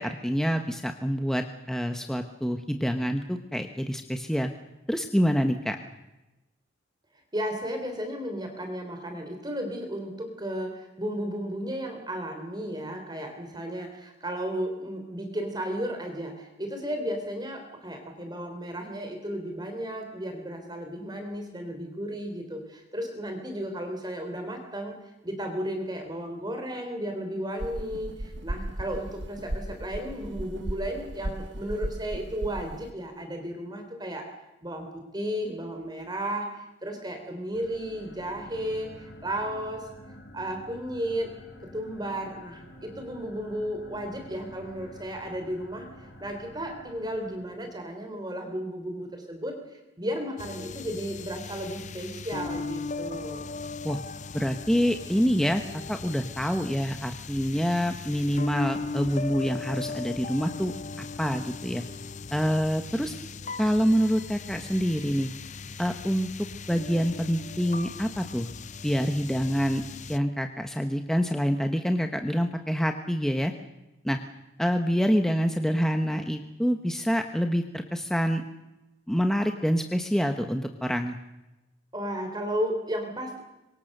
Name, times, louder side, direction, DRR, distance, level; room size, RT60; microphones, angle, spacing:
voice 1, 0.0-4.5 4.9-5.8 53.8-54.0 54.3-55.6 55.9-60.7 61.0-61.8 62.3-63.1 63.6-65.3 65.8-66.3 66.7-68.5 68.8-69.8 70.1-73.5 74.0-74.2 74.6-78.4 79.1-81.2, equal, ahead, 5 dB, 1.1 m, -26 dB
voice 2, 7.3-34.3 34.6-39.9 40.3-41.3 41.7-53.5 81.9-83.4, equal, 20° right, 4 dB, 3.6 m, -34 dB
sound 1, 27.6-32.9, right 1 dB, 65° right, 1.4 m, -35 dB
sound 2, 37.5-47.9, left 1 dB, 60° left, 4.5 m, -49 dB
sound 3, 50.4-70.2, left 4 dB, 35° left, 0.8 m, -38 dB
26.5 x 24.5 x 6.8 m, 0.99 s
head